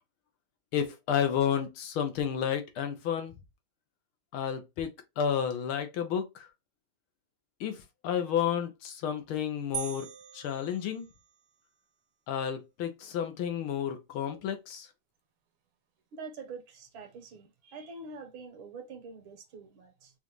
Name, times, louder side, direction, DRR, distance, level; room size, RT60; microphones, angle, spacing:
voice 1, 0.7-3.3 4.3-6.3 7.6-7.8 8.0-10.1 10.3-11.1 12.3-14.9, left 8 dB, 75° left, 1.7 m, -31 dB
sound 1, 9.7-11.5, right 10 dB, 90° right, 0.8 m, -41 dB
voice 2, 16.1-20.1, right 4 dB, 70° right, 1.8 m, -45 dB
5.5 x 2.5 x 3.0 m
omnidirectional pair, 2.4 m